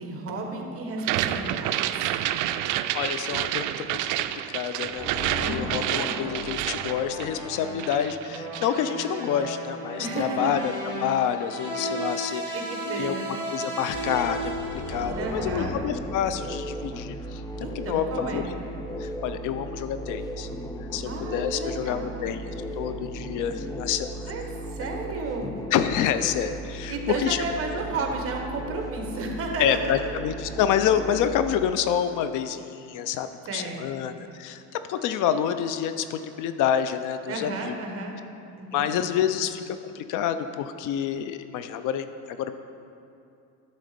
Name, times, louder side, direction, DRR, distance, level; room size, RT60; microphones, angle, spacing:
voice 1, 0.0-2.1 5.4-5.8 10.0-10.6 12.5-13.3 15.2-15.7 17.6-18.5 21.0-22.3 24.3-25.5 26.9-30.1 33.5-34.0 37.3-38.2 38.6-39.2, right 3 dB, 40° right, 2 dB, 1.4 m, -33 dB
sound 1, 1.0-7.5 7.8-8.8, right 13 dB, 65° right, 0.4 m, -29 dB
voice 2, 2.9-4.0 4.3-5.1 5.5-10.7 11.0-12.6 13.0-13.2 13.5-18.4 19.0-20.5 20.8-24.3 25.7-27.4 29.6-37.7 38.7-42.6, left 9 dB, 65° left, 10 dB, 0.6 m, -28 dB
sound 2, 5.0-15.7, right 1 dB, 15° right, 2.2 m, -35 dB
sound 3, 13.9-31.7, equal, 10° left, 0.3 m, -36 dB
11.5 x 4.1 x 6.8 m, 2.6 s
cardioid pair, 135°, 33 cm